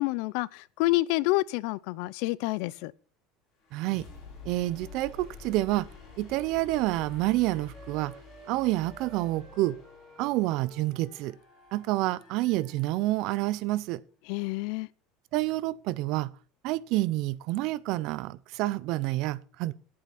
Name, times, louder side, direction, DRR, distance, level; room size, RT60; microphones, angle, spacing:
voice 1, 0.0-2.9 14.3-14.9, left 20 dB, 60° left, 0.5 m, -28 dB
sound 1, 3.6-13.4, left 5 dB, 30° left, 6.8 m, -50 dB
voice 2, 3.7-4.1 4.4-5.9 6.2-8.2 8.5-9.8 10.2-11.4 11.7-14.0 15.3-16.3 16.6-19.7, right 17 dB, 50° right, 0.5 m, -28 dB
Wind instrument woodwind instrument, 4.6-12.9, right 3 dB, 15° right, 3.3 m, -54 dB
10.0 x 8.6 x 5.8 m
cardioid pair, 165°, 0 cm